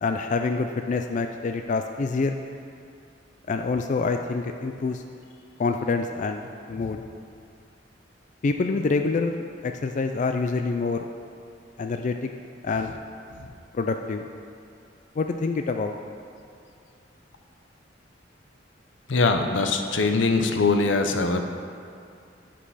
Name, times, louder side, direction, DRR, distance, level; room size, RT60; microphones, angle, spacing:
voice 1, 0.0-2.4 3.5-5.0 5.6-6.4 6.7-7.0 8.4-11.1 11.8-12.3 12.6-12.9 13.7-14.3 15.2-15.9, left 4 dB, 40° left, 5 dB, 0.4 m, -26 dB
voice 2, 19.1-21.4, left 3 dB, 85° left, 6 dB, 0.7 m, -22 dB
10.0 x 5.2 x 5.6 m, 2.5 s
head